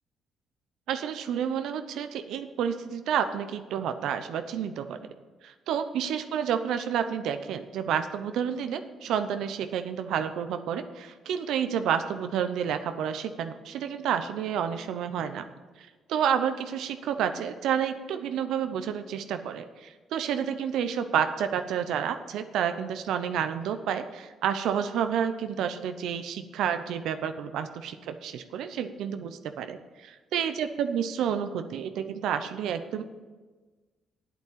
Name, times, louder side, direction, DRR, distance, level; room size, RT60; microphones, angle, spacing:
voice 1, 0.9-5.1 5.4-15.5 15.8-33.0, right 8 dB, 80° right, 9 dB, 0.7 m, -30 dB
8.6 x 8.3 x 8.5 m, 1.3 s
cardioid pair, 90°, 0 cm